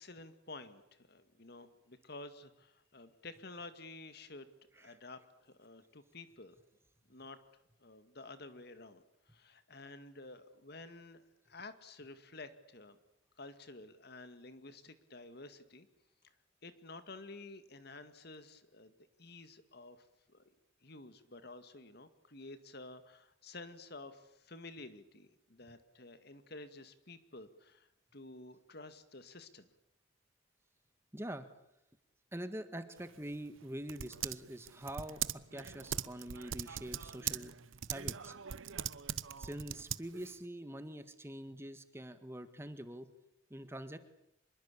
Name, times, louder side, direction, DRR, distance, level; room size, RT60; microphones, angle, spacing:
voice 1, 0.0-4.5 4.8-6.6 7.1-7.4 7.8-13.0 13.4-15.9 16.6-18.9 19.2-20.4 20.8-29.7, left 2 dB, 55° left, 11 dB, 2.1 m, -51 dB
voice 2, 31.1-31.5 32.3-37.5 37.9-38.3 39.4-43.1 43.5-44.0, right 1 dB, 15° right, 10 dB, 1.6 m, -45 dB
Typing, 33.0-40.4, right 9 dB, 85° right, 0.9 m, -41 dB
26.0 x 22.0 x 8.5 m, 0.81 s
head